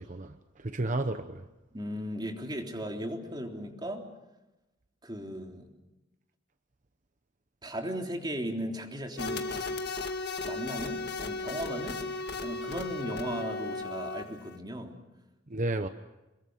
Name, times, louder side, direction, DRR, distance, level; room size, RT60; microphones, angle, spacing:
voice 1, 0.0-1.4 15.5-15.9, right 2 dB, 45° right, 8 dB, 1.0 m, -32 dB
voice 2, 1.7-4.1 5.0-5.7 7.6-9.7 10.4-12.0 12.4-15.0, equal, 25° right, 2 dB, 3.5 m, -37 dB
sound 1, 9.2-14.6, left 3 dB, 60° left, 1.9 m, -35 dB
28.0 x 22.5 x 6.5 m, 1.0 s
head